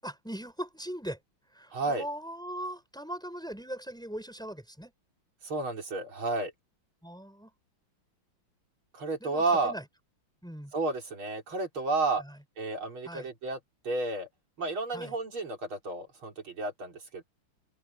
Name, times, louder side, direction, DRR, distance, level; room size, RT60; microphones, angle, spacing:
voice 1, 0.0-1.2 1.5-4.9 7.0-7.5 9.2-9.8 10.4-10.7 12.2-12.4 13.1-13.3 14.9-15.1, equal, ahead, 5.3 m, -40 dB
voice 2, 1.7-2.1 5.4-6.5 8.9-9.7 10.7-12.2 12.6-13.6 13.8-14.3 14.6-17.2, right 3 dB, 85° right, 4.9 m, -31 dB
open air
omnidirectional pair, 2.2 m